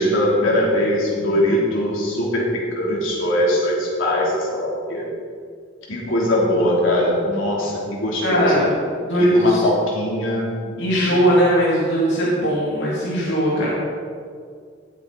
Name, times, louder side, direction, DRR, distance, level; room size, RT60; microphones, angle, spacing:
voice 1, 0.0-5.1 5.9-8.5 9.2-11.1, left 1 dB, 80° left, -4 dB, 3.3 m, -21 dB
voice 2, 8.2-8.7 9.0-9.6 10.8-13.7, equal, 60° left, -6 dB, 2.7 m, -19 dB
19.5 x 8.2 x 4.2 m, 2.1 s
head